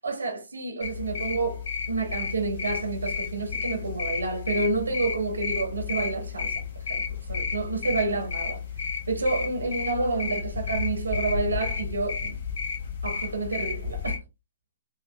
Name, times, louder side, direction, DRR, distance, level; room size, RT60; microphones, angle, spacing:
voice 1, 0.0-6.5 6.9-8.6 9.1-12.4 13.0-14.2, right 3 dB, 80° right, 1.1 m, -29 dB
sound 1, 0.8-14.2, left 6 dB, 60° left, 1.0 m, -32 dB
4.8 x 2.2 x 2.2 m
figure-of-eight pair, 120°, 0 cm